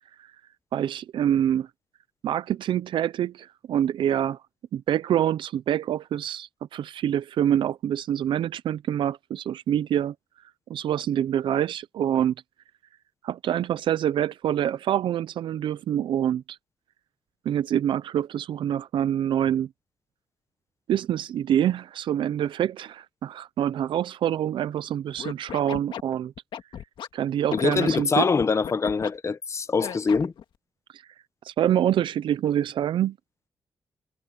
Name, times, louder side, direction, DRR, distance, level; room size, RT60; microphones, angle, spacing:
voice 1, 0.7-1.7 2.2-4.4 4.7-10.1 10.7-12.3 13.2-16.6 17.5-19.7 20.9-26.3 27.1-28.3 30.9-31.0 31.4-33.2, right 10 dB, 85° right, 0.5 m, -26 dB
Scratching (performance technique), 25.2-27.1 27.5-29.1 29.8-30.4, left 8 dB, 85° left, 1.8 m, -35 dB
voice 2, 27.5-30.3, left 5 dB, 35° left, 0.8 m, -24 dB
cardioid pair, 105°, 8 cm